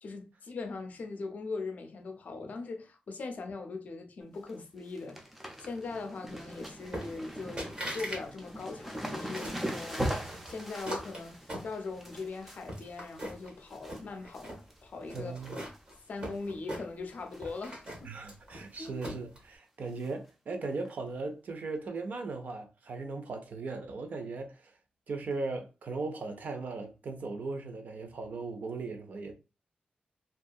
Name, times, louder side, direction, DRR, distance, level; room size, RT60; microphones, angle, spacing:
voice 1, 0.0-5.3 5.6-14.5 14.8-15.3 15.9-17.9 18.8-19.0, left 3 dB, 55° left, 0.5 m, -40 dB
sound 1, 4.2-4.5 4.8-14.0 14.3-14.8 15.1-15.9 16.3-16.4 17.3-17.6 17.8-17.9 18.3-18.4 20.0-20.1 20.8-20.9, equal, 5° right, 0.4 m, -40 dB
sound 2, 6.9-7.3 7.6-8.2 8.5-9.6 10.2-12.1 12.5-13.5 13.8-14.6 15.1-17.1 17.4-19.4, right 1 dB, 35° right, 0.9 m, -41 dB
voice 2, 15.1-15.6 18.0-24.7 25.1-29.3, right 3 dB, 60° right, 0.5 m, -38 dB
2.6 x 2.4 x 2.2 m
wide cardioid pair, 175°, 3 cm